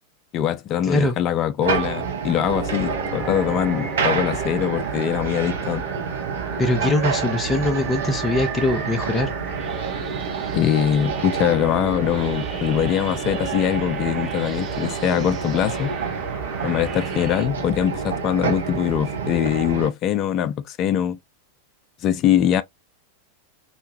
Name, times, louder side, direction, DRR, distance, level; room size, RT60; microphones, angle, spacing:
voice 1, 0.3-5.8 10.5-16.0 16.6-21.2 22.0-22.6, left 10 dB, 35° left, 0.3 m, -22 dB
sound 1, 1.6-19.9, right 6 dB, 65° right, 0.7 m, -28 dB
sound 2, 2.5-17.5, right 4 dB, 30° right, 0.9 m, -34 dB
voice 2, 6.6-9.3, left 2 dB, 20° left, 0.7 m, -22 dB
3.0 x 2.2 x 2.4 m
figure-of-eight pair, 90°, 0 cm